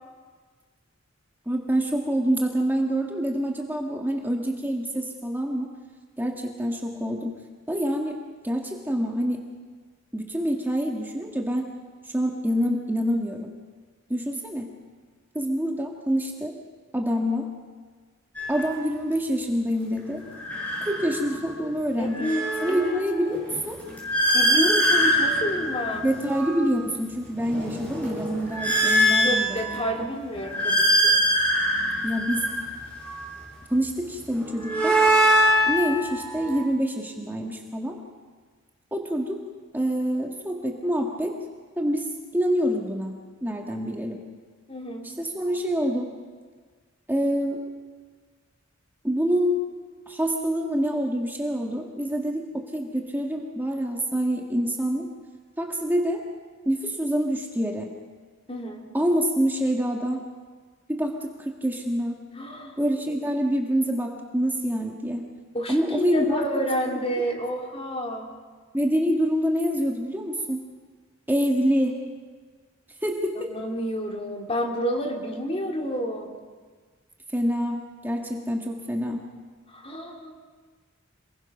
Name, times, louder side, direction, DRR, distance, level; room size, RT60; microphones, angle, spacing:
voice 1, 1.4-5.7 6.2-7.4 7.7-8.2 8.4-9.4 10.1-11.7 12.1-13.5 14.1-14.7 15.3-16.6 16.9-17.5 18.5-20.2 20.8-22.3 22.6-23.8 26.0-29.8 32.0-32.4 33.7-35.0 35.7-38.0 38.9-39.4 39.7-41.4 41.8-42.1 42.3-43.2 43.4-44.2 45.0-46.1 47.1-47.6 49.0-49.6 50.1-55.1 55.6-56.2 56.6-57.9 58.9-60.2 60.9-62.2 62.8-65.3 65.7-66.4 67.1-67.2 68.7-70.6 71.3-72.0 73.0-73.5 77.3-79.2, equal, 10° right, 1 dB, 1.7 m, -26 dB
sound 1, 18.4-18.6 20.3-21.5 21.9-26.7 27.3-29.9 30.4-33.3 34.3-36.6, equal, 5° left, 7.7 m, -23 dB
voice 2, 22.0-23.0 24.3-26.1 29.2-31.2 44.7-45.1 58.5-58.8 62.4-62.8 65.5-68.3 73.5-76.4 79.7-80.4, equal, 30° left, 1 dB, 3.1 m, -29 dB
27.0 x 21.0 x 5.9 m, 1.5 s
head